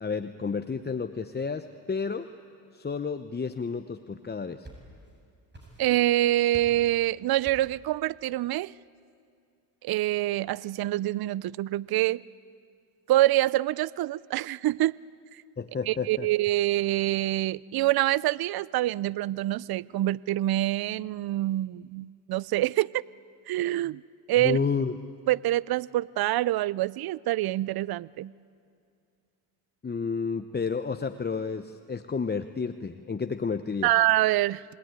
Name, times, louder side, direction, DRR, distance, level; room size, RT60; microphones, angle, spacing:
voice 1, 0.0-2.3 2.7-4.7 15.6-16.3 24.4-24.9 29.8-33.9, left 5 dB, 20° left, 0.9 m, -31 dB
sound 1, 4.2-5.2 5.5-6.1 6.5-6.9 7.4-7.8, right 1 dB, 25° right, 7.9 m, -48 dB
voice 2, 5.8-8.7 9.8-12.2 13.1-14.9 15.3-15.4 15.9-23.0 23.5-24.0 24.3-24.6 25.3-28.3 33.8-34.6, right 15 dB, 55° right, 0.6 m, -26 dB
26.5 x 19.5 x 9.7 m
supercardioid pair, 75°, 46 cm